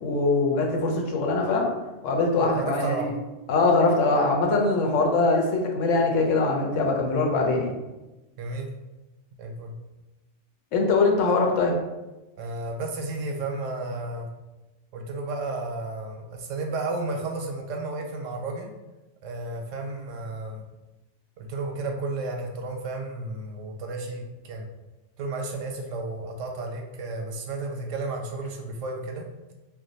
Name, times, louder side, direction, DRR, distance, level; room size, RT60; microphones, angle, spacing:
voice 1, 0.0-1.7 2.0-3.1 3.5-7.7 10.7-11.8, left 3 dB, 85° left, 1 dB, 1.0 m, -22 dB
voice 2, 2.4-3.1 8.4-8.7 9.4-9.7 12.4-14.3 14.9-18.7 19.2-20.7 21.4-24.7 25.2-29.3, right 2 dB, 90° right, 2 dB, 0.9 m, -32 dB
2.5 x 2.1 x 3.8 m, 1.1 s
omnidirectional pair, 1.3 m